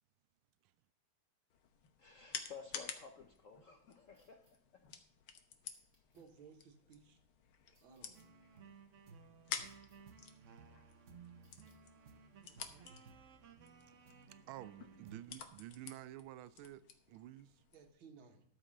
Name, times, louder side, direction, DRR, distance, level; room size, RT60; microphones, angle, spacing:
sound 1, 1.5-17.9, left 7 dB, 85° left, 1.9 m, -51 dB
voice 1, 2.0-4.8, left 6 dB, 60° left, 0.8 m, -54 dB
sound 2, 4.1-4.5 5.7-6.2 7.7-8.2 9.6-10.0 11.4-11.8, right 1 dB, 20° right, 3.8 m, -76 dB
voice 2, 6.1-7.2 7.8-8.3 17.7-18.4, right 5 dB, 70° right, 2.1 m, -59 dB
sound 3, 8.1-15.2, right 5 dB, 55° right, 0.9 m, -58 dB
voice 3, 14.5-17.5, right 13 dB, 90° right, 1.5 m, -51 dB
13.0 x 4.9 x 6.4 m
omnidirectional pair, 2.2 m